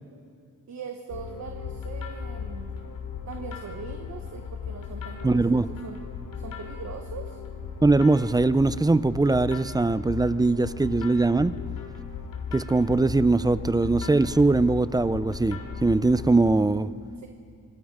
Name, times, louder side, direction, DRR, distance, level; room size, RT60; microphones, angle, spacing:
voice 1, 0.7-2.7 3.3-6.0 6.3-7.4 17.2-17.3, right 5 dB, 55° right, 1.3 m, -41 dB
sound 1, 1.1-16.6, left 6 dB, 85° left, 2.8 m, -37 dB
voice 2, 5.2-5.7 7.8-11.5 12.5-16.9, right 3 dB, 10° right, 0.4 m, -21 dB
26.0 x 21.5 x 4.9 m
wide cardioid pair, 115°, 34 cm